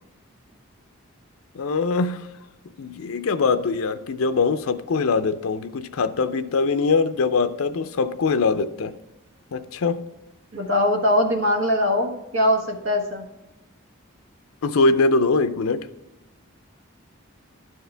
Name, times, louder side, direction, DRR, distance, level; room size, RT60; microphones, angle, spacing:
voice 1, 1.5-2.3 2.8-8.9 9.5-10.0 14.6-15.9, left 4 dB, 85° left, 10 dB, 0.5 m, -22 dB
voice 2, 10.5-13.2, left 1 dB, 65° right, 2 dB, 1.3 m, -21 dB
11.0 x 4.7 x 3.3 m, 1.0 s
head